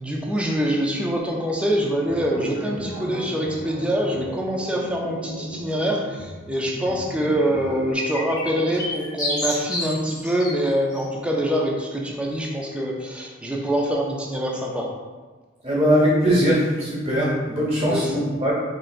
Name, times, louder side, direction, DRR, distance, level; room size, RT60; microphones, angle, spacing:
voice 1, 0.0-14.9 17.8-18.2, equal, 5° right, -1 dB, 0.4 m, -25 dB
sound 1, 2.0-7.9, equal, 50° left, 0.8 m, -36 dB
sound 2, 7.9-10.5 10.9-11.0, left 1 dB, 20° left, 0.8 m, -29 dB
voice 2, 15.6-18.5, equal, 30° right, -7 dB, 1.4 m, -20 dB
3.9 x 3.2 x 2.5 m, 1.3 s
head